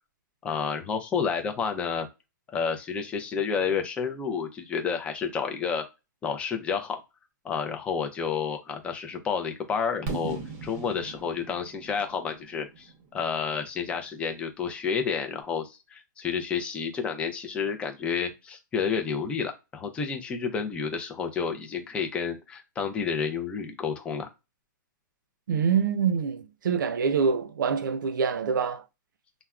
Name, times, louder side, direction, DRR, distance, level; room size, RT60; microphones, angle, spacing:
voice 1, 0.4-2.1 2.5-5.8 6.2-7.0 7.4-24.3, left 6 dB, 10° left, 0.4 m, -30 dB
Fireworks, 10.1-13.9, right 3 dB, 25° right, 0.7 m, -38 dB
voice 2, 25.5-28.9, right 6 dB, 75° right, 0.5 m, -25 dB
3.3 x 2.1 x 2.3 m
hypercardioid pair, 155°, 11 cm